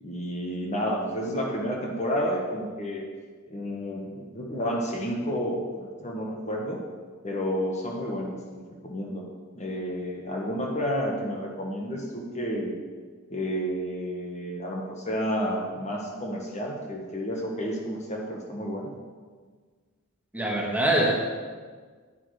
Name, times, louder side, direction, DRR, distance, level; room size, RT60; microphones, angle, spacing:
voice 1, 0.0-3.0 3.5-6.8 7.2-9.2 9.5-12.8 13.3-18.9, equal, 35° left, -1 dB, 1.5 m, -31 dB
voice 2, 20.3-21.1, right 1 dB, 10° right, -2 dB, 1.7 m, -23 dB
11.0 x 10.0 x 5.0 m, 1.6 s
head